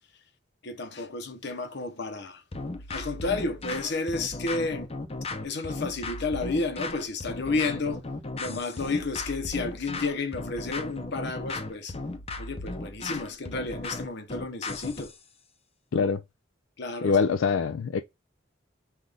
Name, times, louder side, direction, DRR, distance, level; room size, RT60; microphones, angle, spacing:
voice 1, 0.6-2.4 2.9-4.9 5.4-8.0 8.4-11.9 12.4-15.1 15.9-16.1 16.8-17.2, left 3 dB, 60° left, 0.9 m, -31 dB
sound 1, 2.5-15.2, left 2 dB, 30° left, 0.7 m, -36 dB
voice 2, 17.0-18.0, left 5 dB, 80° left, 0.4 m, -24 dB
5.8 x 2.5 x 3.3 m
head